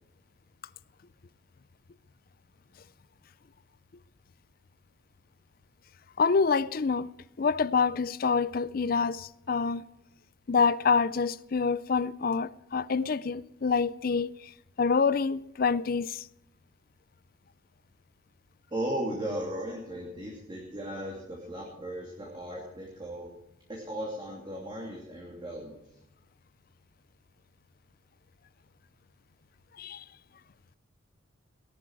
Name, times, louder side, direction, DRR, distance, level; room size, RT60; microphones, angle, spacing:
voice 1, 6.2-7.1 7.4-9.8 10.5-14.3 14.8-16.3 29.8-30.0, left 5 dB, 45° left, 0.4 m, -26 dB
voice 2, 18.7-23.3 23.7-25.8, right 1 dB, 25° right, 2.7 m, -36 dB
18.0 x 12.5 x 4.7 m
head